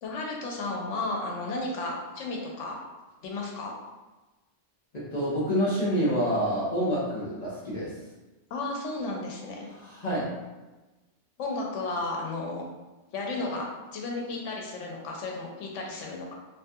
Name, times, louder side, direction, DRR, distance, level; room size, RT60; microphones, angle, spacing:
voice 1, 0.0-2.8 3.2-3.7 8.5-9.7 11.4-12.6 13.1-16.3, left 2 dB, 85° left, -1 dB, 0.9 m, -33 dB
voice 2, 4.9-7.9 9.7-10.3, equal, 45° left, -9 dB, 0.7 m, -27 dB
2.7 x 2.3 x 2.6 m, 1.1 s
omnidirectional pair, 1.2 m